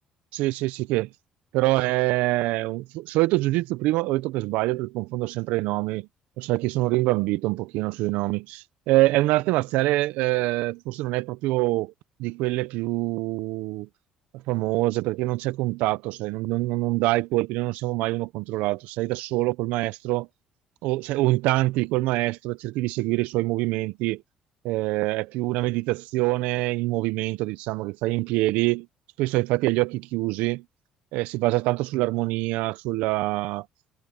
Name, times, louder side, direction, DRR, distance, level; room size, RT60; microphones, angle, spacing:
voice 1, 0.3-1.1 1.5-6.1 6.4-11.9 12.2-13.9 14.5-20.3 20.8-24.2 24.6-28.9 29.2-30.6 31.1-33.6, right 19 dB, 75° right, 0.9 m, -25 dB
supercardioid pair, 65°, 3 cm